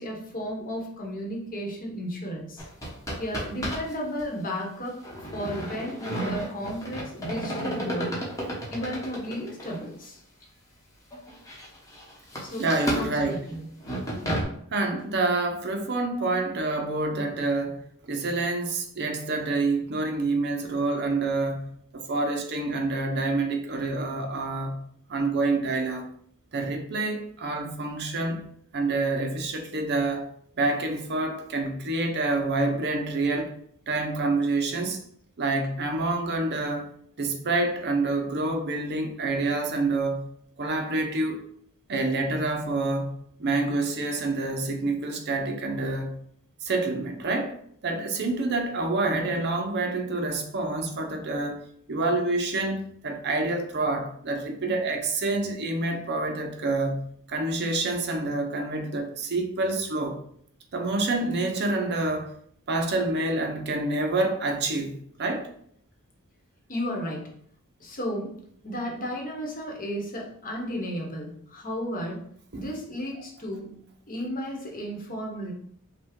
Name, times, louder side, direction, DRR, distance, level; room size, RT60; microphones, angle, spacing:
voice 1, 0.0-2.6 3.2-5.0 5.3-8.2 8.7-10.2 12.4-12.7 12.9-13.7 14.2-14.3 66.7-67.3 67.8-72.3 72.6-73.8 74.1-75.5, equal, 40° left, 1.1 m, -33 dB
sound 1, 2.6-3.9 4.2-4.3 5.0-9.8 10.4-10.5 11.1-14.4, equal, 15° left, 1.0 m, -32 dB
voice 2, 12.6-13.4 14.7-26.1 26.5-28.5 28.7-30.3 30.5-33.6 33.9-35.0 35.4-36.9 37.2-40.3 40.6-41.4 41.9-46.2 46.6-47.6 47.8-51.6 51.9-60.2 60.7-62.3 62.7-65.5 72.5-72.6, right 2 dB, 50° right, 0.7 m, -27 dB
5.6 x 2.3 x 3.6 m
head